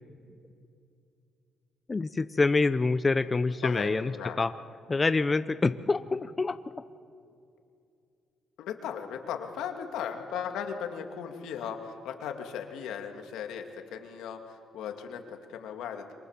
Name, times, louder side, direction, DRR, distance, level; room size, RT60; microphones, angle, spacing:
voice 1, 1.9-4.1 4.4-4.5 4.9-6.6, left 3 dB, 25° left, 12 dB, 0.7 m, -26 dB
voice 2, 3.6-4.4 8.6-16.1, left 8 dB, 90° left, 5 dB, 2.3 m, -37 dB
27.0 x 23.5 x 7.4 m, 2.5 s
cardioid pair, 90°, 0 cm